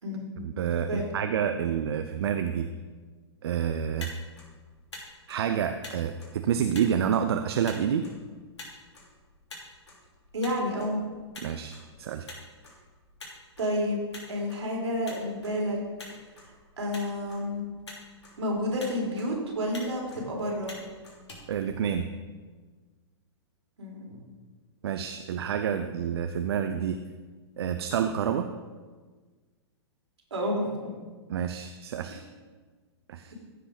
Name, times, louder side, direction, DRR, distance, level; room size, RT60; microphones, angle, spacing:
voice 1, 0.4-2.7 3.4-4.1 5.3-8.1 11.4-12.3 21.5-22.1 24.8-27.0 27.6-28.5 31.3-32.2 33.1-33.3, right 8 dB, 60° right, 8 dB, 0.6 m, -28 dB
Motor vehicle (road), 3.8-22.3, left 2 dB, 75° left, 3.1 m, -48 dB
voice 2, 10.3-11.0 13.6-14.0 14.3-15.8 16.8-17.6 18.4-20.8 23.8-24.1 30.3-31.0, equal, 75° right, -1 dB, 3.4 m, -30 dB
15.0 x 5.2 x 5.1 m, 1.4 s
figure-of-eight pair, 110°, 15 cm